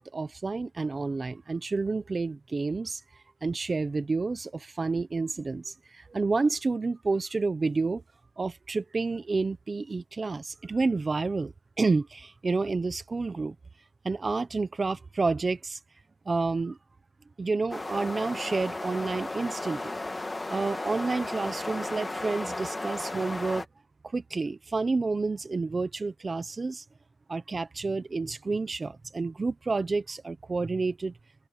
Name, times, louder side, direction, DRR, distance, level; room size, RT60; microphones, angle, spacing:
voice 1, 0.0-3.0 3.4-8.0 8.4-13.5 14.0-15.8 16.3-16.8 17.4-19.9 20.5-23.6 24.1-26.8 27.3-31.1, right 3 dB, 20° right, 0.9 m, -29 dB
wind some really excellent wind, 17.7-23.6, left 2 dB, 10° left, 1.5 m, -35 dB
open air
cardioid pair, 160°, 0 cm